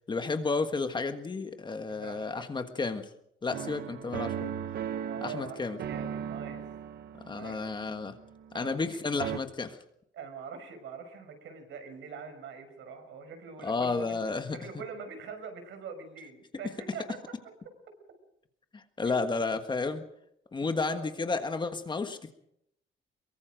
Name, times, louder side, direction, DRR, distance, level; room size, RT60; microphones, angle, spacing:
voice 1, 0.1-3.1 3.4-4.5 5.2-5.8 7.2-8.2 8.5-9.8 13.6-14.6 18.7-20.0 20.5-22.3, left 4 dB, 25° left, 7 dB, 1.5 m, -32 dB
voice 2, 1.9-2.7 5.0-6.6 7.4-7.8 8.5-9.0 10.1-14.2 14.5-17.2 20.8-21.1, right 5 dB, 75° right, 7 dB, 5.8 m, -44 dB
sound 1, 3.5-8.9 9.2-9.4, right 9 dB, 55° right, 0.9 m, -38 dB
23.5 x 23.0 x 5.2 m, 0.76 s
cardioid pair, 145°, 20 cm